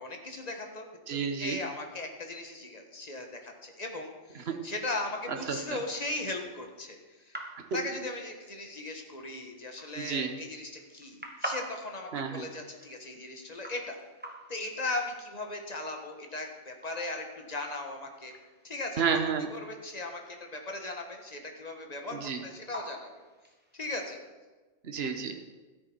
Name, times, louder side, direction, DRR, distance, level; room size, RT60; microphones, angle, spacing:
voice 1, 0.0-7.3 7.7-14.0 14.5-18.3 18.6-19.0 19.5-23.1 23.7-24.2, left 2 dB, 35° left, 3 dB, 1.5 m, -38 dB
voice 2, 1.1-1.6 4.5-4.6 5.5-5.6 10.0-10.3 12.1-12.5 19.0-19.5 22.1-22.4 24.8-25.3, right 6 dB, 60° right, 5 dB, 1.3 m, -30 dB
sound 1, 4.4-23.9, right 1 dB, 10° right, 1.4 m, -48 dB
13.5 x 10.5 x 4.5 m, 1.3 s
omnidirectional pair, 1.2 m